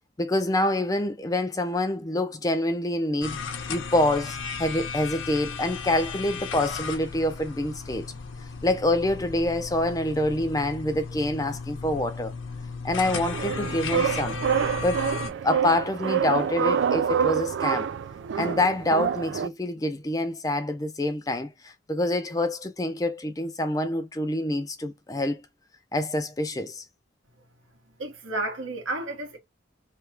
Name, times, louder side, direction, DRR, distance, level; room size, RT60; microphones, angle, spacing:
voice 1, 0.2-3.4 3.7-8.1 8.6-12.3 12.8-14.4 14.8-17.9 18.3-25.4 25.9-26.8, left 1 dB, 20° left, 0.5 m, -26 dB
sound 1, 3.2-15.3, left 5 dB, 85° left, 0.9 m, -35 dB
sound 2, 13.0-19.5, right 7 dB, 70° right, 0.3 m, -27 dB
voice 2, 28.0-29.4, right 2 dB, 90° right, 1.5 m, -31 dB
3.3 x 2.3 x 4.4 m
head